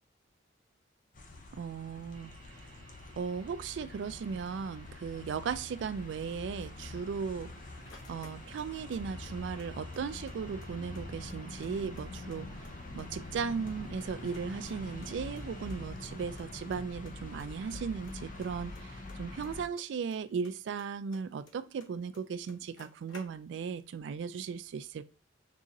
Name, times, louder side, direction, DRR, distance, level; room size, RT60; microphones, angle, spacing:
sound 1, 1.1-19.6, left 2 dB, 45° left, 0.6 m, -45 dB
voice 1, 1.5-2.3 3.2-7.5 8.1-25.0, right 6 dB, 65° right, 0.3 m, -37 dB
sound 2, 2.1-15.9, right 3 dB, 35° right, 0.7 m, -61 dB
sound 3, 7.2-9.0 9.2-10.3 10.6-10.7 10.9-12.4 12.6-13.4 13.7-15.1 15.4-15.5 15.7-15.8 16.0-16.1 16.4-16.8 17.0-17.5 17.7-20.2 20.4-21.9 22.1-22.2 22.5-23.7, left 2 dB, 85° left, 0.9 m, -56 dB
3.8 x 2.9 x 2.4 m
head